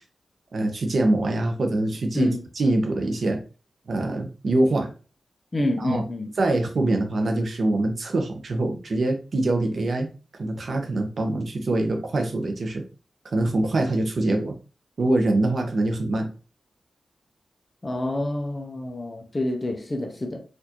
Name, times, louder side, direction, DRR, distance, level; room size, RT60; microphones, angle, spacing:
voice 1, 0.5-3.4 3.9-4.9 5.8-6.0 6.4-10.1 10.4-12.8 13.3-14.5 15.0-16.3, right 2 dB, 55° right, 0.7 m, -24 dB
voice 2, 5.5-6.3 17.8-20.4, left 1 dB, 25° left, 0.6 m, -27 dB
4.3 x 2.5 x 2.8 m
wide cardioid pair, 135°, 0 cm